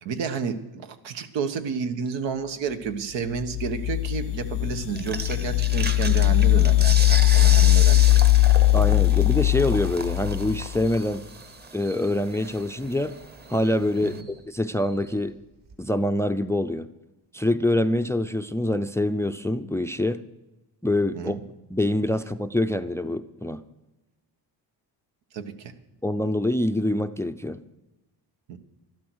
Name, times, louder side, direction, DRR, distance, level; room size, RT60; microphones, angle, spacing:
voice 1, 0.0-8.2 14.0-14.2 21.1-21.4 25.3-25.7 28.5-28.6, right 6 dB, 85° right, 8 dB, 1.4 m, -31 dB
sound 1, 3.3-10.9, left 18 dB, 75° left, 0.6 m, -20 dB
sound 2, 5.0-14.2, right 3 dB, 25° right, 1.0 m, -35 dB
voice 2, 8.7-11.2 11.7-13.1 13.5-14.2 14.5-15.4 15.8-16.9 17.3-20.2 20.8-21.3 21.7-23.6 26.0-27.6, left 1 dB, 5° left, 13 dB, 0.4 m, -25 dB
sound 3, 10.4-15.7, right 4 dB, 45° right, 5.3 m, -54 dB
12.5 x 12.5 x 6.2 m, 1.0 s
cardioid pair, 105°, 43 cm